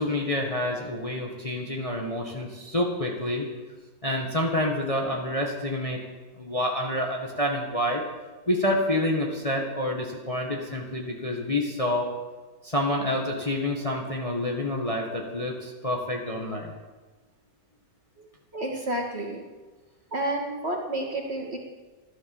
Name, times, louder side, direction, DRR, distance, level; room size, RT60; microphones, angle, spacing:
voice 1, 0.0-3.5 4.0-6.0 6.4-8.0 8.5-12.1 12.6-16.7, left 1 dB, 20° left, 0 dB, 1.7 m, -28 dB
voice 2, 18.5-19.4 20.1-21.6, right 1 dB, 35° right, 0 dB, 2.4 m, -30 dB
13.5 x 11.5 x 7.2 m, 1.3 s
omnidirectional pair, 1.9 m